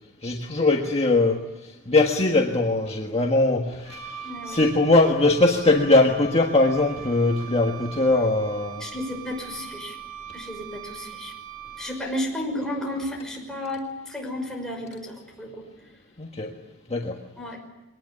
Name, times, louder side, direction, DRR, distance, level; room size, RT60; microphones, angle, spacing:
voice 1, 0.2-8.8 16.2-16.5 16.9-17.1, left 2 dB, 30° left, 1 dB, 1.6 m, -21 dB
Wind instrument woodwind instrument, 3.8-12.1, right 7 dB, 90° right, 5.0 m, -41 dB
voice 2, 4.2-4.6 8.8-10.0 10.3-11.3 11.8-15.7 17.4-17.6, left 1 dB, 5° left, 0 dB, 5.7 m, -32 dB
22.5 x 19.0 x 9.9 m, 1.0 s
head